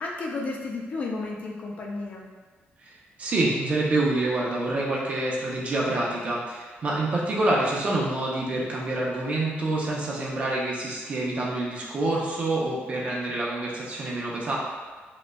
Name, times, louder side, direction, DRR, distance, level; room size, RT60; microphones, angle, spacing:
voice 1, 0.0-2.2, left 3 dB, 40° left, -2 dB, 0.4 m, -32 dB
voice 2, 3.2-14.6, right 2 dB, 35° right, -4 dB, 0.6 m, -27 dB
5.0 x 2.2 x 2.2 m, 1.4 s
wide cardioid pair, 175°, 4 cm